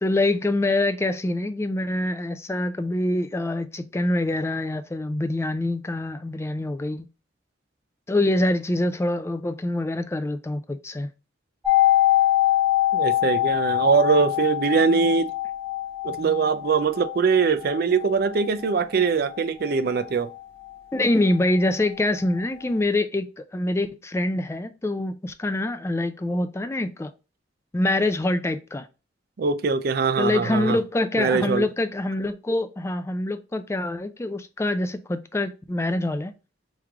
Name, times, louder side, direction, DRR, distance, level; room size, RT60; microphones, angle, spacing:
voice 1, 0.0-7.1 8.1-11.1 20.9-27.1 27.7-28.9 30.2-36.3, left 2 dB, 15° left, 0.3 m, -25 dB
sound 1, 11.6-21.4 21.6-21.7, left 14 dB, 10° right, 2.0 m, -24 dB
voice 2, 12.9-15.3 16.0-20.3 29.4-30.8 31.2-31.7, right 5 dB, 55° right, 0.4 m, -22 dB
3.5 x 3.2 x 3.5 m
head